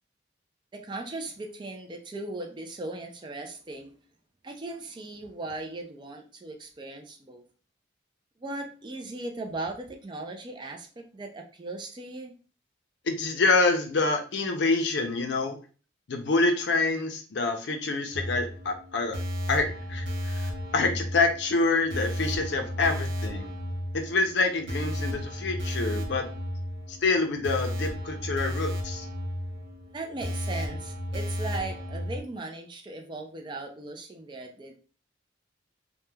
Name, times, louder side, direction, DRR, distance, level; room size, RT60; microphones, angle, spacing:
voice 1, 0.7-3.9 4.4-7.4 8.4-12.3 29.9-34.8, right 2 dB, 25° right, 3 dB, 0.3 m, -38 dB
voice 2, 13.0-15.6 16.1-19.2 19.5-23.5 23.9-26.3 26.9-29.1, left 3 dB, 65° left, 5 dB, 0.5 m, -26 dB
sound 1, 18.1-32.2, equal, 65° right, 0.6 m, -33 dB
3.0 x 2.1 x 2.2 m, 0.37 s
head